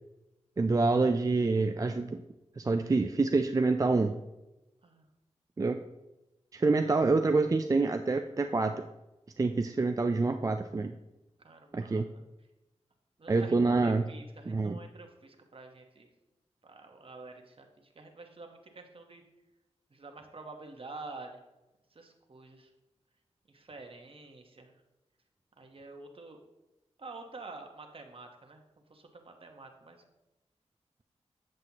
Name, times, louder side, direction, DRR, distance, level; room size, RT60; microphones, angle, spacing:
voice 1, 0.6-2.2 2.6-4.2 5.6-5.8 6.5-8.7 9.4-10.9 11.7-12.0 13.3-14.0 14.5-14.8, right 3 dB, 30° right, 6 dB, 0.4 m, -27 dB
voice 2, 6.7-7.0 11.4-12.2 13.2-16.1 16.6-17.7 17.9-19.2 19.9-21.4 21.9-22.7 23.5-24.7 25.6-26.4 27.0-28.6 28.9-30.0, right 3 dB, 50° right, 4 dB, 1.2 m, -48 dB
7.7 x 7.6 x 2.9 m, 1.0 s
cardioid pair, 60°, 12 cm